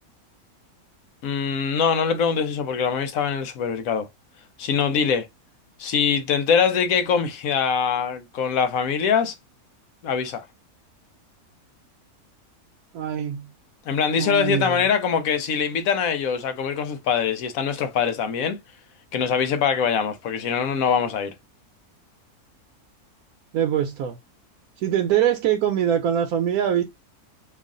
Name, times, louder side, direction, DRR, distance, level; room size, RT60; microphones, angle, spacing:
voice 1, 1.2-4.1 4.6-5.3 5.8-9.3 10.0-10.4 13.9-18.6 19.1-21.3, left 6 dB, 70° left, 1.0 m, -23 dB
voice 2, 12.9-13.5 14.2-14.9 23.5-24.2 24.8-26.8, right 9 dB, 75° right, 1.1 m, -23 dB
3.1 x 2.4 x 3.6 m
omnidirectional pair, 1.6 m